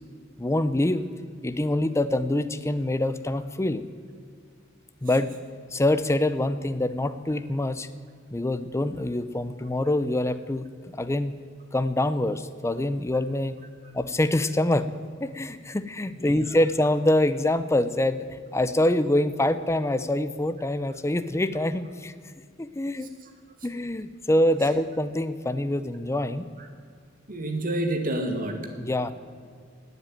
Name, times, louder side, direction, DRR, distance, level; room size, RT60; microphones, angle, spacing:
voice 1, 0.4-1.0 1.4-3.8 5.0-5.3 5.7-7.9 8.3-10.7 11.0-11.3 11.7-13.6 13.9-14.9 15.2-18.3 18.5-22.1 22.6-23.1 23.6-26.5 28.8-29.1, left 1 dB, 15° left, 12 dB, 0.6 m, -25 dB
voice 2, 16.1-16.5 23.2-23.3 26.6-26.7 27.3-28.6, right 1 dB, 45° right, 5 dB, 2.3 m, -29 dB
19.0 x 8.1 x 9.2 m, 2.2 s
head